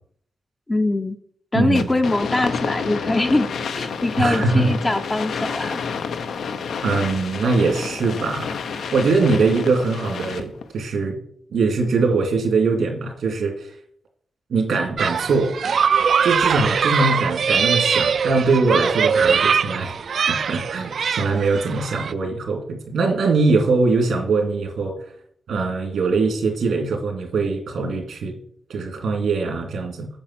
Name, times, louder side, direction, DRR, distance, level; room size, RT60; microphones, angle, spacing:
voice 1, 0.7-1.2 1.5-3.5 3.8-5.8, left 2 dB, 15° left, 7 dB, 0.5 m, -22 dB
voice 2, 1.5-1.9 4.2-4.7 6.8-11.2 11.5-13.7 14.5-15.5 16.2-20.0 20.3-24.9 25.5-28.3 28.7-30.1, right 3 dB, 90° right, 3 dB, 2.3 m, -22 dB
sound 1, 1.8-10.7, left 5 dB, 90° left, 0.7 m, -29 dB
sound 2, 15.0-22.1, right 6 dB, 60° right, 0.3 m, -21 dB
8.7 x 6.1 x 6.0 m, 0.64 s
wide cardioid pair, 155°, 0 cm